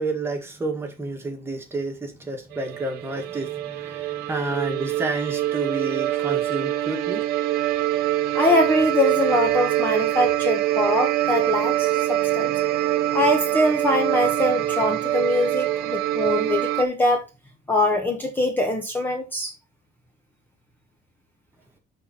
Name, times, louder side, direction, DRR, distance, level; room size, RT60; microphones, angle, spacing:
voice 1, 0.0-7.2, right 2 dB, 15° right, 1.8 m, -30 dB
sound 1, 2.5-16.8, right 14 dB, 70° right, 1.0 m, -24 dB
voice 2, 8.3-12.5 13.1-17.3 17.7-19.5, left 1 dB, 10° left, 1.1 m, -23 dB
12.0 x 4.3 x 4.3 m
cardioid pair, 170°, 17 cm